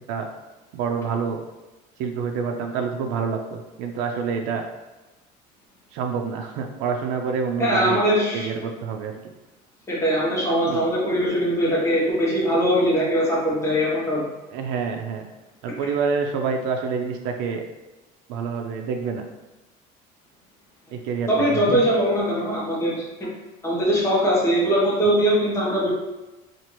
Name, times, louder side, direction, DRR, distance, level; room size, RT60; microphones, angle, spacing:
voice 1, 0.7-1.4 2.0-4.6 5.9-8.0 8.3-9.1 10.7-10.8 14.5-15.3 15.6-17.6 18.3-19.2 20.9-21.8, right 5 dB, 80° right, 4 dB, 0.5 m, -27 dB
voice 2, 7.6-8.5 9.9-14.2 21.3-23.3 23.6-25.9, equal, 15° left, -5 dB, 1.0 m, -21 dB
4.3 x 2.5 x 3.1 m, 1.1 s
cardioid pair, 165°, 18 cm